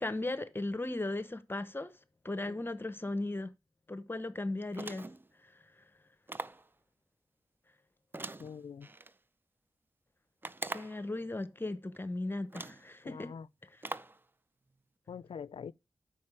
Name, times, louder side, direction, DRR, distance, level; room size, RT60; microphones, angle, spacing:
voice 1, 0.0-1.9 2.2-3.5 3.9-5.1 5.4-5.8 10.7-13.3 13.6-13.8, left 2 dB, 25° left, 0.9 m, -37 dB
sound 1, 4.7-5.3 6.3-6.7 8.1-9.1 10.4-11.1 11.9-12.0 12.5-12.9 13.8-14.2, right 2 dB, 20° right, 0.4 m, -42 dB
voice 2, 8.4-8.9 13.0-13.5 15.1-15.7, left 7 dB, 80° left, 0.4 m, -44 dB
8.7 x 5.8 x 4.8 m
wide cardioid pair, 90°, 9 cm